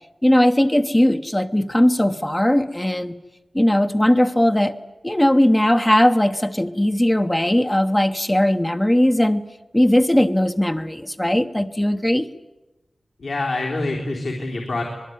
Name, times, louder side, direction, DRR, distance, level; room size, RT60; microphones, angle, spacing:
voice 1, 0.2-3.2 3.5-4.8 5.0-9.4 9.7-12.3, left 1 dB, 15° left, 7 dB, 0.9 m, -18 dB
voice 2, 13.2-14.8, left 2 dB, 75° left, 0 dB, 3.8 m, -25 dB
25.5 x 21.0 x 9.4 m, 1.1 s
wide cardioid pair, 95°, 0 cm